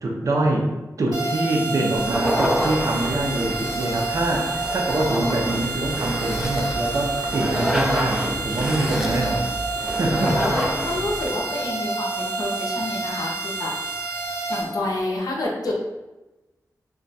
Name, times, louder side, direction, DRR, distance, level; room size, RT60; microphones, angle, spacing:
voice 1, 0.0-0.7 1.0-9.5 9.8-10.4, right 2 dB, 55° right, 0 dB, 0.5 m, -24 dB
sound 1, 1.1-14.6, right 3 dB, 85° right, 1.1 m, -29 dB
sound 2, 2.0-11.3, equal, 5° right, 0.3 m, -28 dB
voice 2, 10.2-13.7 14.2-15.9, left 2 dB, 70° left, -1 dB, 0.6 m, -29 dB
2.3 x 2.2 x 3.9 m, 1.1 s
wide cardioid pair, 125°, 7 cm